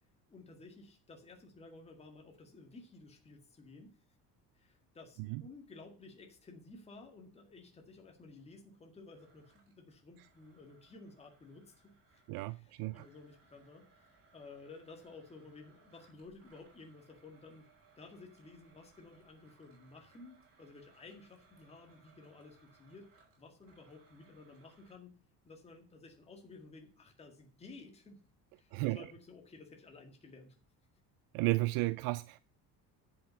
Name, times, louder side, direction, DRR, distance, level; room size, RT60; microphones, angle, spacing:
voice 1, 0.3-3.9 4.5-17.7 18.0-23.1 23.4-25.2 25.4-28.2 28.5-30.6, left 3 dB, 15° left, 1.9 m, -54 dB
Domestic sounds home sounds, 9.1-12.5 12.9-25.0, right 4 dB, 40° right, 4.4 m, -67 dB
voice 2, 12.3-13.1 28.7-29.0 31.3-32.4, right 21 dB, 75° right, 0.5 m, -33 dB
10.0 x 5.8 x 7.0 m
cardioid pair, 160°, 36 cm